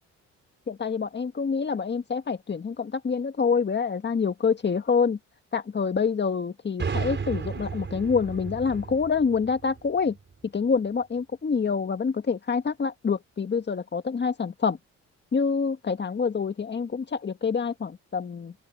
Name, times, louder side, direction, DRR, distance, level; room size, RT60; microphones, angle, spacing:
voice 1, 0.7-5.2 5.5-10.2 10.5-14.8 15.3-18.5, left 5 dB, 35° left, 2.0 m, -26 dB
sound 1, 6.8-10.5, right 5 dB, 40° right, 5.2 m, -34 dB
open air
cardioid pair, 90°, 30 cm